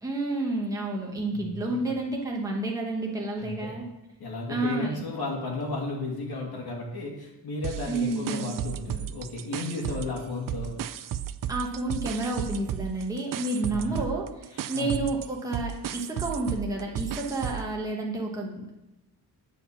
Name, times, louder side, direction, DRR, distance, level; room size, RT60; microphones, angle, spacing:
voice 1, 0.0-3.9 4.5-5.0 7.9-8.5 11.5-18.7, right 2 dB, 10° right, -2 dB, 1.2 m, -30 dB
voice 2, 1.3-1.8 3.4-3.7 4.2-10.7 13.7-13.9 14.5-15.0, left 2 dB, 65° left, -1 dB, 2.5 m, -34 dB
sound 1, 7.6-10.2 10.5-17.7, right 10 dB, 55° right, 0.5 m, -34 dB
8.9 x 5.0 x 7.2 m, 0.95 s
wide cardioid pair, 160°, 40 cm